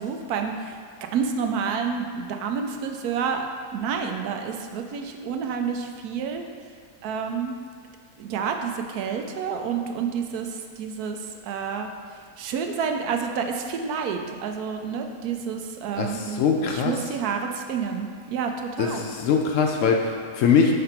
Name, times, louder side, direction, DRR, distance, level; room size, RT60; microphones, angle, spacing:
voice 1, 0.0-3.5 3.7-6.4 7.0-7.5 8.2-11.9 12.4-19.1, right 6 dB, 85° right, 4 dB, 1.1 m, -29 dB
voice 2, 16.0-17.0 18.8-20.7, left 6 dB, 70° left, 2 dB, 0.8 m, -22 dB
5.7 x 3.4 x 5.7 m, 2.1 s
omnidirectional pair, 1.6 m